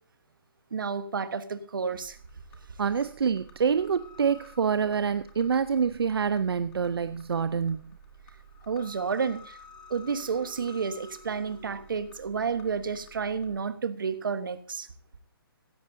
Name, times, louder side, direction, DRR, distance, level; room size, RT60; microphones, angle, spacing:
voice 1, 0.7-2.2 8.7-9.6 9.9-14.9, right 5 dB, 60° right, 11 dB, 1.2 m, -31 dB
sound 1, 2.0-13.6, equal, 5° left, 0.8 m, -52 dB
voice 2, 2.8-7.9, right 6 dB, 75° right, 13 dB, 0.6 m, -26 dB
16.0 x 15.5 x 2.7 m, 0.43 s
hypercardioid pair, 175°, 13 cm